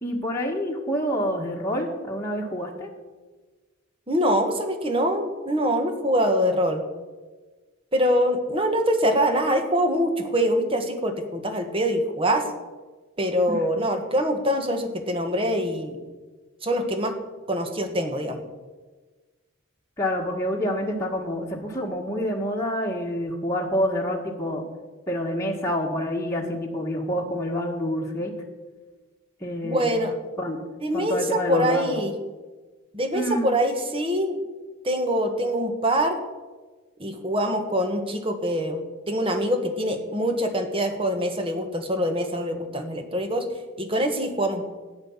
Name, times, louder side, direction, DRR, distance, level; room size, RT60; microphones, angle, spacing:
voice 1, 0.0-2.9 13.5-13.6 20.0-24.6 25.1-28.3 29.4-30.0 30.4-30.6 30.9-32.0 33.1-33.5, equal, 15° left, -2 dB, 1.7 m, -27 dB
voice 2, 4.1-6.8 7.9-12.4 13.2-16.0 16.6-17.1 17.5-18.4 29.6-30.1 30.8-32.1 32.9-34.4 34.8-36.2 37.0-43.5 43.8-44.6, equal, 25° right, 6 dB, 1.6 m, -24 dB
13.5 x 10.0 x 7.3 m, 1.3 s
head